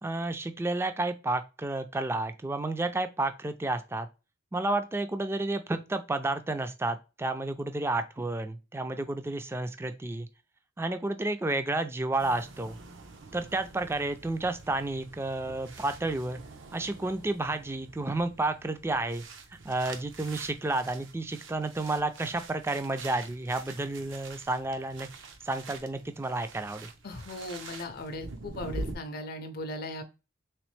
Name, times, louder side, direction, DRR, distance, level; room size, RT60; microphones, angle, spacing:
voice 1, 0.0-4.1 4.5-10.3 10.8-12.8 13.3-16.4 16.7-19.2 19.5-25.1 25.4-26.9, right 2 dB, 15° right, 0.3 m, -31 dB
sound 1, 12.2-29.0, right 3 dB, 75° right, 0.7 m, -46 dB
voice 2, 27.0-30.0, left 1 dB, 50° left, 0.5 m, -38 dB
3.3 x 3.0 x 3.1 m
head